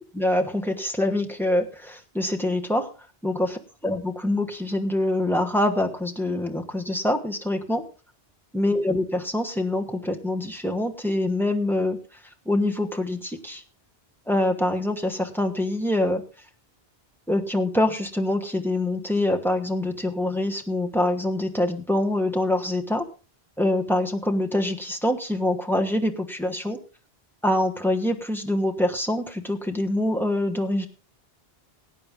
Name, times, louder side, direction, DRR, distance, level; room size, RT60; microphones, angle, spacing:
voice 1, 0.1-2.9 3.2-3.6 3.8-7.8 8.5-12.0 12.5-13.6 14.3-16.2 17.3-23.0 23.6-26.8 27.4-30.9, left 1 dB, ahead, 4 dB, 1.1 m, -25 dB
18.0 x 8.8 x 3.6 m, 0.34 s
omnidirectional pair, 1.0 m